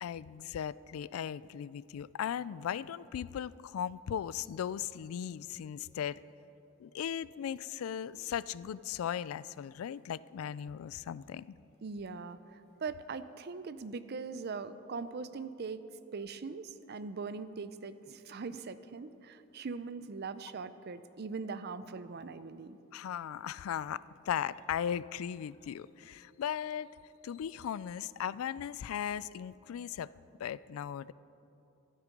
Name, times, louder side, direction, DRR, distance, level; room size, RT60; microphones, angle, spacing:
voice 1, 0.0-6.2 6.8-11.6 22.9-26.9 27.2-30.1 30.4-31.1, left 9 dB, 90° left, 18 dB, 0.3 m, -37 dB
voice 2, 11.8-15.8 16.1-22.8, right 4 dB, 50° right, 13 dB, 0.5 m, -41 dB
13.0 x 12.0 x 5.2 m, 2.9 s
head